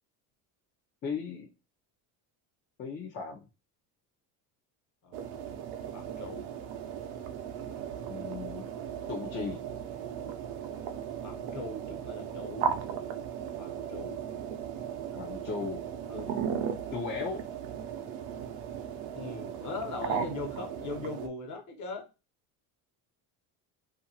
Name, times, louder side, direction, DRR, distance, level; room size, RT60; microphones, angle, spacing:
voice 1, 1.0-1.5 2.8-3.5 8.1-8.7 9.1-9.6 15.1-15.8 16.9-17.5, left 5 dB, 30° left, 0 dB, 0.4 m, -36 dB
sound 1, 5.1-21.3, right 8 dB, 85° right, 0.6 m, -37 dB
voice 2, 5.9-6.5 11.2-12.7 13.6-14.3 16.1-16.3 19.1-22.1, left 3 dB, 45° left, 4 dB, 0.9 m, -40 dB
2.7 x 2.5 x 2.7 m, 0.28 s
cardioid pair, 125°, 40 cm